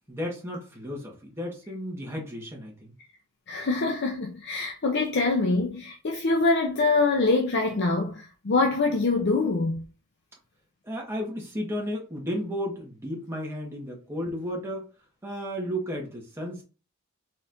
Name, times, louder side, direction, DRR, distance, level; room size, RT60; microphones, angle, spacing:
voice 1, 0.1-2.9 10.8-14.9 15.2-16.6, equal, 10° right, 1.4 m, -33 dB
voice 2, 3.5-9.8, left 3 dB, 50° left, 0.6 m, -24 dB
4.3 x 4.1 x 2.6 m
head